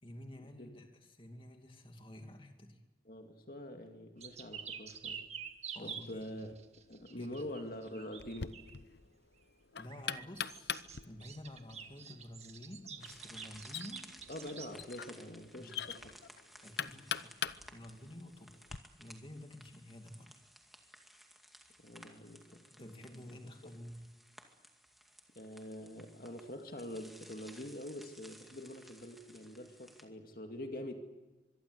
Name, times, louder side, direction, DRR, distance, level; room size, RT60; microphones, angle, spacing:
voice 1, 0.0-2.8 5.7-6.3 7.1-7.5 9.8-10.8 11.0-14.1 15.5-15.9 16.6-18.5 19.0-20.3 22.7-24.1, left 1 dB, 30° left, 4 dB, 2.6 m, -50 dB
voice 2, 3.0-5.2 5.8-6.5 6.9-8.7 14.3-16.1 21.8-23.4 25.4-30.9, left 1 dB, 50° left, 4 dB, 2.3 m, -45 dB
sound 1, 4.2-8.8 9.8-14.7, right 7 dB, 35° right, 1.8 m, -48 dB
Knock, 8.2-18.8, left 8 dB, 70° left, 0.8 m, -44 dB
sound 2, 13.0-30.0, equal, ahead, 2.2 m, -58 dB
25.0 x 22.5 x 8.1 m, 1.2 s
head